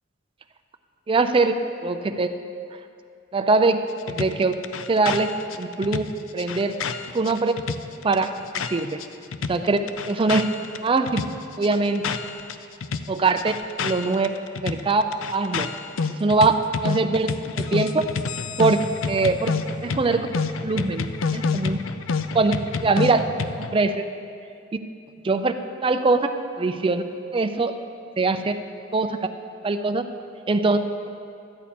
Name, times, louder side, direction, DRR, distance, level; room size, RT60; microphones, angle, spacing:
voice 1, 1.1-1.5 1.8-2.3 3.3-3.8 4.1-4.5 4.9-5.3 5.6-6.0 6.3-6.7 7.1-7.5 8.0-8.3 8.7-9.0 9.5-9.8 10.1-10.5 10.8-11.2 11.6-12.0 13.1-13.5 13.8-14.3 14.6-15.0 15.3-15.7 16.2-16.5 16.8-17.3 17.6-18.0 18.6-18.8 19.1-19.5 19.8-20.3 20.6-21.0 21.3-21.8 22.3-22.5 22.8-23.3 23.6-24.0 25.2-25.5 25.8-26.3 26.6-27.0 27.3-27.7 28.2-28.5 28.9-29.2 29.6-30.0 30.5-30.8, right 3 dB, 25° right, 7 dB, 0.4 m, -21 dB
sound 1, 4.1-9.1 9.3-12.5 12.8-23.7, left 5 dB, 90° left, 0.4 m, -29 dB
12.5 x 8.4 x 4.3 m, 2.5 s
head